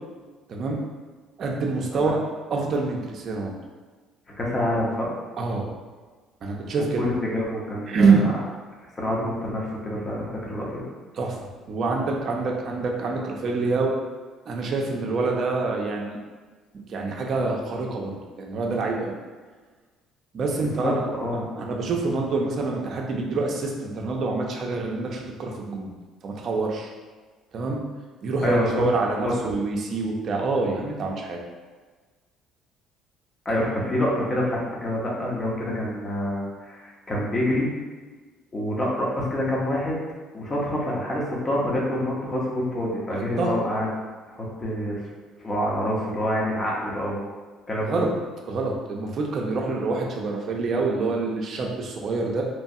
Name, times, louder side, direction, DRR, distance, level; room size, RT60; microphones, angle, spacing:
voice 1, 0.5-0.8 1.4-2.2 2.5-3.6 5.4-5.7 6.4-7.1 7.9-8.3 11.2-11.4 11.7-13.9 14.5-16.2 16.7-19.2 20.3-21.0 21.6-25.9 26.2-26.9 27.5-27.8 28.2-31.4 43.2-43.5 47.9-48.1 48.5-52.4, right 3 dB, 50° right, 0 dB, 0.5 m, -26 dB
voice 2, 4.4-5.1 7.0-8.3 8.8-10.8 20.8-21.5 28.4-28.9 29.2-29.5 33.4-37.7 38.5-40.0 40.3-43.9 44.3-45.1 45.4-47.2 47.7-48.0, left 1 dB, 30° left, -4 dB, 0.8 m, -27 dB
3.0 x 2.2 x 2.7 m, 1.4 s
cardioid pair, 95°, 0 cm